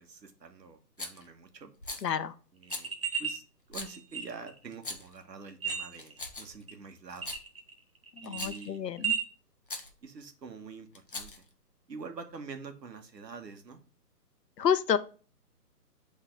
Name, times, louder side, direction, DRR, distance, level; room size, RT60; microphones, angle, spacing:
voice 1, 0.0-1.7 2.5-2.9 3.2-3.4 3.7-7.3 8.2-8.8 10.0-11.3 11.9-13.8, right 5 dB, 85° right, 6 dB, 1.6 m, -46 dB
Rattle, 1.0-1.3 1.8-2.1 2.7-2.9 3.7-3.9 4.7-5.2 5.9-6.6 7.1-7.4 8.2-8.7 9.7-9.9 10.9-11.5, left 2 dB, 35° left, 0.7 m, -40 dB
voice 2, 2.0-2.3 8.2-9.1 14.6-15.0, left 8 dB, 85° left, 12 dB, 0.9 m, -29 dB
sound 1, 2.6-3.4 3.9-4.6 5.5-6.2 6.7-6.8 7.2-7.8 8.1-9.2, right 6 dB, 35° right, 0.8 m, -33 dB
7.9 x 4.0 x 3.8 m, 0.37 s
hypercardioid pair, 180°, 49 cm